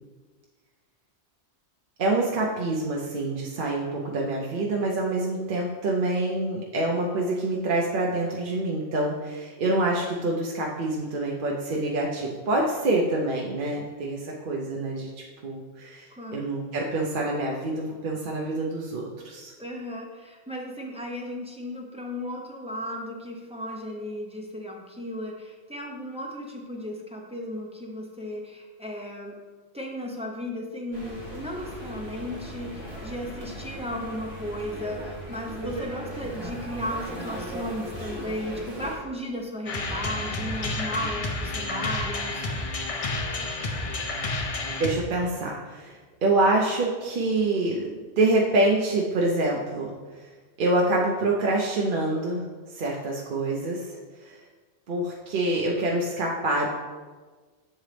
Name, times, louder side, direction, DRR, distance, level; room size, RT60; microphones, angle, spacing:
voice 1, 2.0-15.1 15.4-19.5 44.8-47.9 48.2-49.9 50.6-54.4 54.9-56.7, right 2 dB, 55° right, -2 dB, 0.7 m, -26 dB
voice 2, 16.1-16.5 19.6-29.4 29.7-42.5, equal, 10° right, -1 dB, 0.5 m, -35 dB
sound 1, 30.9-38.9, right 1 dB, 25° right, 1.2 m, -37 dB
sound 2, 39.7-44.9, left 2 dB, 45° left, 0.5 m, -30 dB
7.6 x 3.9 x 3.2 m, 1.4 s
omnidirectional pair, 1.1 m